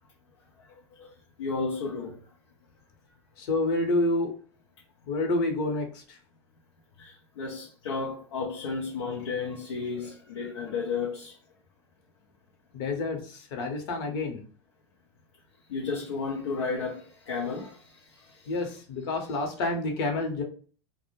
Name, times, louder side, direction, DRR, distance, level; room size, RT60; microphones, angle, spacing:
voice 1, 1.4-2.2 7.0-7.1 7.4-11.3 15.7-17.7, left 4 dB, 85° left, 0.5 m, -32 dB
voice 2, 3.4-4.3 5.1-6.2 12.7-14.4 18.5-20.4, left 2 dB, 60° left, 0.8 m, -28 dB
2.1 x 2.0 x 2.9 m
hypercardioid pair, 105°, 14 cm